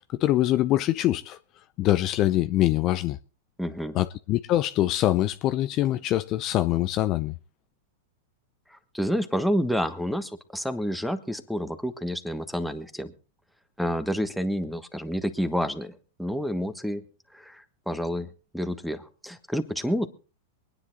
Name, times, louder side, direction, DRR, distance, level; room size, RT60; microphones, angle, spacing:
voice 1, 0.2-1.4 1.8-3.2 3.9-7.3, left 14 dB, 40° left, 0.6 m, -24 dB
voice 2, 3.6-4.0 8.7-13.1 13.8-17.0 17.3-20.1, equal, ahead, 1.4 m, -29 dB
23.5 x 9.9 x 4.0 m
hypercardioid pair, 105°, 0 cm